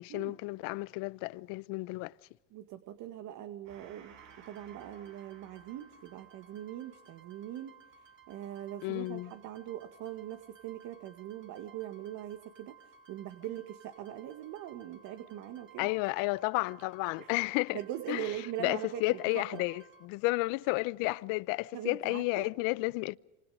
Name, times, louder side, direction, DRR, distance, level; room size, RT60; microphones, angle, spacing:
voice 1, 0.0-2.1 8.8-9.3 15.8-17.8 18.1-18.3 18.6-23.2, left 23 dB, 65° left, 0.8 m, -32 dB
voice 2, 2.5-4.2 4.5-7.8 8.3-15.9 17.2-17.3 17.7-19.6 21.7-22.5, right 12 dB, 55° right, 2.0 m, -41 dB
Gong, 3.6-10.6, right 7 dB, 85° right, 6.5 m, -60 dB
sound 1, 4.2-20.0, right 6 dB, 35° right, 3.9 m, -59 dB
28.0 x 26.5 x 5.2 m
supercardioid pair, 105°, 36 cm